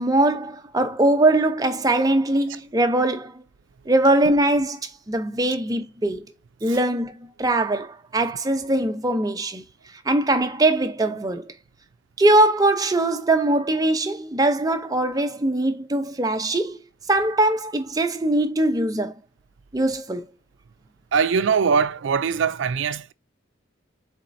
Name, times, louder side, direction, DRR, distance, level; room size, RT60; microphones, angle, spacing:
voice 1, 0.0-3.4 3.9-6.2 6.6-9.6 10.1-11.5 12.2-16.8 17.1-19.1 19.7-20.2, right 2 dB, 20° right, 0.6 m, -21 dB
voice 2, 21.1-23.1, right 6 dB, 65° right, 0.4 m, -22 dB
4.3 x 4.0 x 2.6 m
head